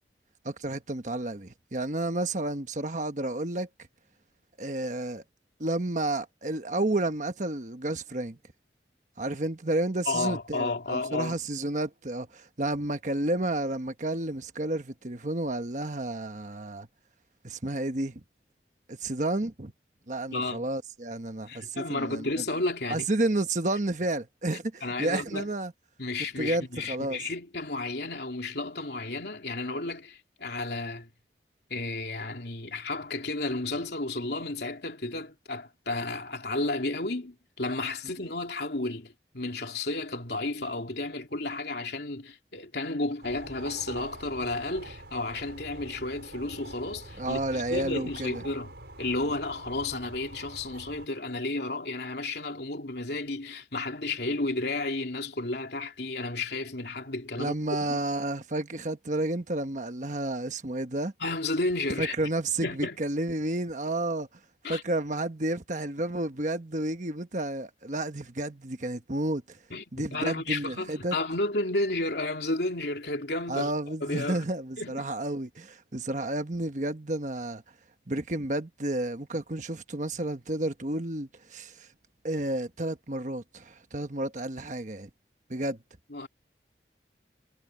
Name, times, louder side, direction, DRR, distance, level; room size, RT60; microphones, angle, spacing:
voice 1, 0.4-3.7 4.6-5.2 5.6-8.4 9.2-16.9 17.4-18.2 18.9-19.7 20.1-22.4 22.9-25.7 26.4-27.2 47.2-48.4 57.4-61.1 62.0-64.3 64.7-69.6 69.9-71.2 73.5-77.6 78.1-81.9 82.2-85.1 85.5-85.8, right 2 dB, 45° right, 1.3 m, -31 dB
voice 2, 10.0-11.4 20.3-20.6 21.5-23.1 24.8-25.5 26.0-31.1 31.7-48.7 49.0-57.5 61.2-62.3 62.6-63.0 64.6-64.8 69.7-69.8 70.1-73.7 74.0-74.4 74.8-75.1 86.1-86.3, left 2 dB, 70° left, 3.0 m, -32 dB
sound 1, 43.2-51.1, right 2 dB, 80° right, 5.4 m, -45 dB
head